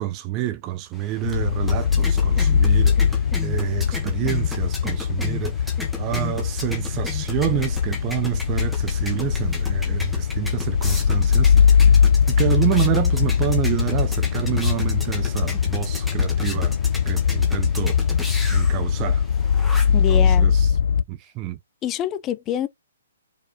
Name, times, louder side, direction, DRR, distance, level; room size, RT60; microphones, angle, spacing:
voice 1, 0.0-11.9 12.3-16.8 17.1-18.0 18.5-19.2 20.1-20.7 21.1-21.6, right 14 dB, 20° right, 0.6 m, -28 dB
sound 1, 0.9-20.1, left 2 dB, ahead, 1.5 m, -36 dB
sound 2, 1.2-21.0, left 7 dB, 65° left, 0.4 m, -21 dB
voice 2, 19.9-20.6 21.8-22.7, left 11 dB, 20° left, 0.7 m, -26 dB
4.9 x 4.3 x 5.1 m
hypercardioid pair, 160°, 0 cm